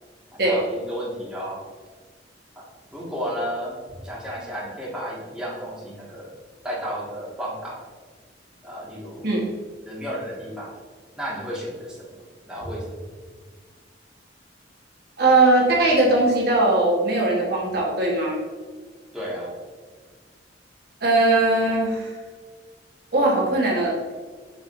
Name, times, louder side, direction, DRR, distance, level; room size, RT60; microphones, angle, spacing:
voice 1, 0.3-1.6 2.9-6.3 6.6-7.8 8.6-9.3 9.9-10.7 11.1-12.2 12.5-13.0 19.1-19.5, equal, 5° right, -7 dB, 1.9 m, -33 dB
voice 2, 15.2-18.4 21.0-22.1 23.1-24.0, right 2 dB, 60° right, -3 dB, 1.4 m, -19 dB
7.0 x 6.6 x 2.7 m, 1.5 s
head